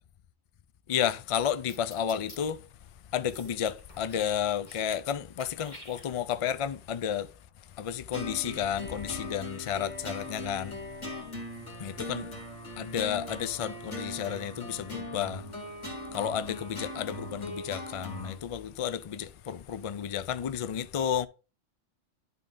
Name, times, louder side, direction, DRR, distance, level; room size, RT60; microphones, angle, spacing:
voice 1, 0.9-2.6 3.1-7.3 7.8-10.7 11.8-12.3 12.8-15.4 16.1-21.3, left 9 dB, 65° left, 0.3 m, -32 dB
sound 1, 1.7-2.4 3.3-4.3 4.6-5.1 5.4-6.4, left 1 dB, 40° left, 1.8 m, -49 dB
sound 2, 8.1-18.4, left 1 dB, 90° left, 2.5 m, -40 dB
11.0 x 3.8 x 3.8 m
omnidirectional pair, 1.2 m